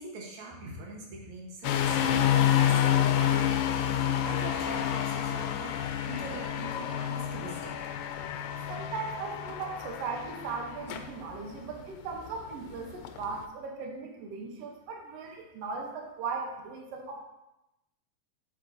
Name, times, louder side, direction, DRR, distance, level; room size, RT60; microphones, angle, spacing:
voice 1, 0.0-3.7 4.2-7.8, right 3 dB, 60° right, -1 dB, 2.2 m, -43 dB
sound 1, 1.6-13.4, left 10 dB, 80° left, 2.1 m, -29 dB
voice 2, 8.7-17.2, right 4 dB, 85° right, 2 dB, 1.4 m, -38 dB
8.1 x 7.6 x 2.7 m, 0.92 s
omnidirectional pair, 4.1 m